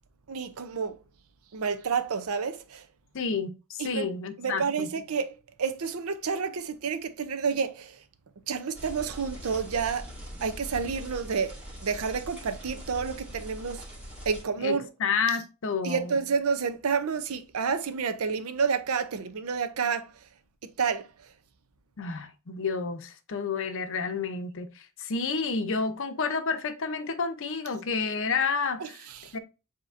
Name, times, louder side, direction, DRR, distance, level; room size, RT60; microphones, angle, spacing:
voice 1, 0.3-1.0 1.5-2.8 3.8-4.1 4.4-8.0 8.5-10.1 10.4-13.8 14.3-14.9 15.8-20.1 20.8-21.1 28.8-29.3, right 5 dB, 75° right, 0.6 m, -29 dB
voice 2, 3.1-4.9 14.6-16.2 22.0-29.0 29.3-29.4, left 5 dB, 60° left, 0.6 m, -30 dB
sound 1, 8.7-14.4, equal, 5° right, 1.7 m, -42 dB
7.3 x 2.8 x 2.5 m
head